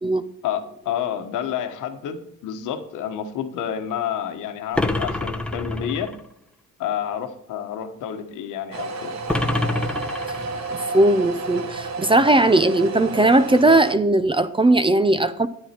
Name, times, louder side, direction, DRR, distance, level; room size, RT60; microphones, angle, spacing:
voice 1, 0.4-6.1 6.8-9.1, left 9 dB, 90° left, 7 dB, 1.3 m, -29 dB
sound 1, 4.7-6.2 9.3-10.8, left 2 dB, 5° left, 0.9 m, -26 dB
sound 2, 8.7-13.9, right 3 dB, 60° right, 1.3 m, -31 dB
voice 2, 10.9-15.5, right 2 dB, 15° right, 12 dB, 0.6 m, -18 dB
9.9 x 9.3 x 4.4 m, 0.73 s
cardioid pair, 90°, 30 cm